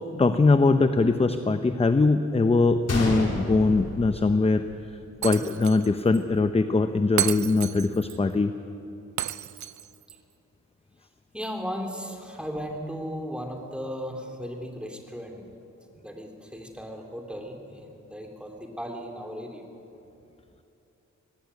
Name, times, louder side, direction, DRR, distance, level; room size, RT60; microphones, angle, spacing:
voice 1, 0.1-4.6 5.2-8.5, left 3 dB, 20° left, 9 dB, 0.7 m, -22 dB
Gunshot gunfire, 2.9-4.9 5.2-5.3 6.0-6.2, left 1 dB, 55° left, 4.0 m, -30 dB
Shatter, 5.2-5.9 6.1-6.2 7.2-8.2 9.2-10.2, right 11 dB, 70° right, 0.5 m, -31 dB
voice 2, 11.3-15.4 16.0-19.6, equal, 5° right, 2 dB, 2.8 m, -36 dB
19.0 x 16.5 x 9.7 m, 2.8 s
wide cardioid pair, 105°, 30 cm